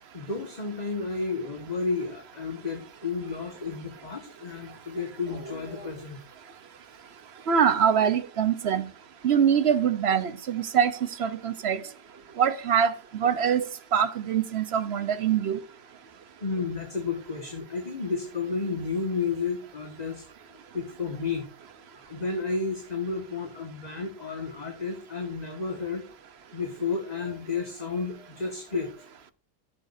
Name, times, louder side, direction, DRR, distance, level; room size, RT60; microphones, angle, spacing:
voice 1, 0.1-6.2 12.3-12.4 16.4-21.5 21.9-26.0 26.5-29.1, left 4 dB, 25° left, 1.6 m, -32 dB
voice 2, 7.5-8.9 9.2-11.8 12.4-13.6 13.9-15.6, right 8 dB, 50° right, 0.8 m, -24 dB
14.5 x 7.5 x 2.6 m
omnidirectional pair, 1.8 m